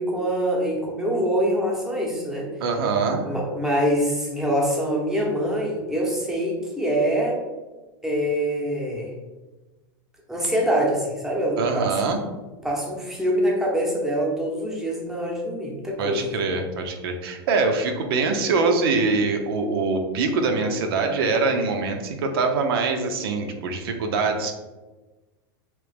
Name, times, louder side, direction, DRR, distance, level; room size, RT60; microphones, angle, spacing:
voice 1, 0.0-2.5 3.2-7.4 8.0-9.1 10.3-12.2 12.6-16.3, equal, 5° right, -3 dB, 0.8 m, -24 dB
voice 2, 2.6-3.3 11.6-12.2 16.0-24.5, right 4 dB, 75° right, 4 dB, 0.6 m, -23 dB
3.2 x 2.9 x 3.3 m, 1.2 s
supercardioid pair, 135°, 13 cm